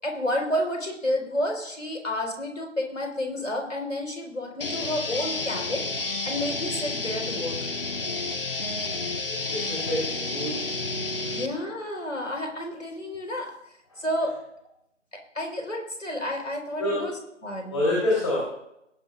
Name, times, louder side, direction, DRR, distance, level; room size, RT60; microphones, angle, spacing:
voice 1, 0.0-5.9 6.2-7.6 11.3-13.5 14.0-14.3 15.1-17.2 17.4-17.8, left 1 dB, 85° left, 2 dB, 4.5 m, -30 dB
sound 1, 4.6-11.5, left 3 dB, 45° left, 1.3 m, -30 dB
voice 2, 9.2-10.6 11.2-11.4 13.9-14.0 16.8-17.0 17.7-18.5, left 1 dB, 25° left, -6 dB, 3.4 m, -27 dB
18.5 x 12.0 x 2.5 m, 0.80 s
figure-of-eight pair, 160°, 38 cm